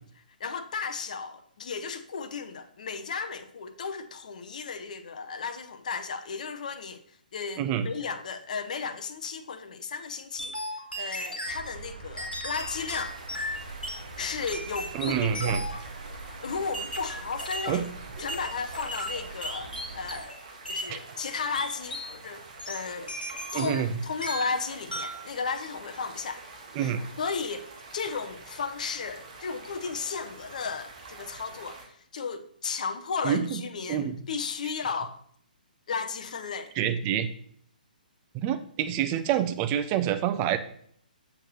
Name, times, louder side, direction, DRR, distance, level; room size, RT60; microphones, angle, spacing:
voice 1, 0.2-13.2 14.2-15.8 16.3-17.8 18.2-20.3 20.7-23.2 23.5-26.4 26.8-35.2 35.9-36.7, left 5 dB, 55° left, 0.7 m, -34 dB
voice 2, 7.6-7.9 14.9-15.6 17.7-17.8 20.9-21.0 23.5-23.9 26.8-27.0 33.2-33.6 33.9-34.2 36.8-37.3 38.3-40.6, right 10 dB, 25° right, 0.5 m, -27 dB
sound 1, 10.4-11.6 12.2-14.0 14.5-15.9 16.7-17.8 18.3-20.4 20.7-20.9 21.5-22.1 22.6-23.9 24.2-24.6 24.9-25.3, equal, 85° left, 1.4 m, -36 dB
sound 2, 11.4-20.2, right 3 dB, 70° right, 1.1 m, -43 dB
sound 3, 12.6-31.9, right 3 dB, 50° right, 1.6 m, -47 dB
7.7 x 6.5 x 3.0 m
figure-of-eight pair, 130°, 5 cm